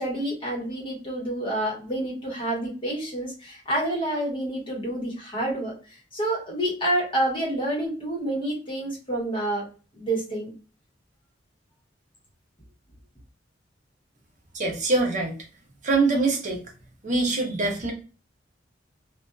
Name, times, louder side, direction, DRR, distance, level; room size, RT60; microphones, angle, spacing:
voice 1, 0.0-5.7 6.1-9.6 9.9-10.5, right 1 dB, 30° left, -2 dB, 1.1 m, -28 dB
voice 2, 14.5-15.3 15.8-16.6 17.0-17.9, right 3 dB, 45° right, 1 dB, 0.6 m, -23 dB
2.5 x 2.2 x 2.2 m, 0.36 s
head